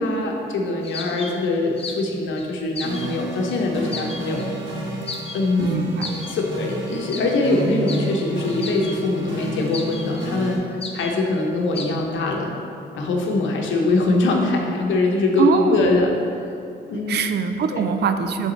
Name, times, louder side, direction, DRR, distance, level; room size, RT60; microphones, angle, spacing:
voice 1, 0.0-4.5 5.3-5.7 6.3-10.6 10.9-12.5 12.9-16.1 16.9-17.2 17.7-17.8, left 2 dB, 85° left, 1 dB, 0.9 m, -22 dB
sound 1, 0.8-2.1 2.4-3.2 3.5-3.6 3.9-4.6 5.0-5.7 6.0-6.4 7.0-9.0 9.4-10.3 10.8-11.2 11.8-11.9, left 4 dB, 30° left, 0.5 m, -35 dB
sound 2, 2.8-10.6, right 1 dB, 90° right, 1.3 m, -32 dB
voice 2, 5.6-6.1 15.4-16.0 17.1-18.5, right 6 dB, 60° right, 8 dB, 0.4 m, -23 dB
7.2 x 3.6 x 4.0 m, 2.5 s
cardioid pair, 110°, 19 cm